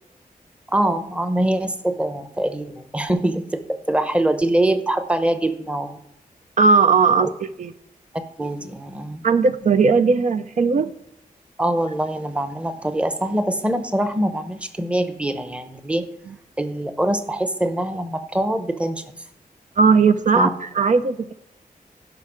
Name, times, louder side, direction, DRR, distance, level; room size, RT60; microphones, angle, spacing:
voice 1, 0.7-6.0 7.2-7.3 8.4-9.2 11.6-16.1 16.6-19.0 20.3-20.5, right 1 dB, 10° right, 9 dB, 0.8 m, -23 dB
voice 2, 6.6-7.7 9.2-10.9 16.3-16.4 19.8-21.3, right 4 dB, 60° right, 10 dB, 0.5 m, -18 dB
11.5 x 5.8 x 6.1 m, 0.77 s
wide cardioid pair, 165°, 15 cm